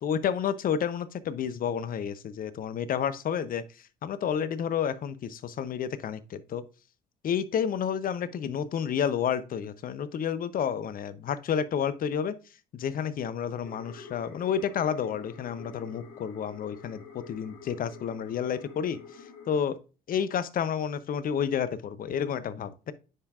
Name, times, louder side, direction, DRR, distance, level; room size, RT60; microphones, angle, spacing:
voice 1, 0.0-3.6 4.0-6.6 7.2-12.3 12.7-19.0 19.5-19.8 20.1-22.9, left 8 dB, 45° left, 0.6 m, -30 dB
sound 1, 13.6-19.6, left 6 dB, 70° left, 1.3 m, -48 dB
9.6 x 5.2 x 2.4 m
hypercardioid pair, 60°, 21 cm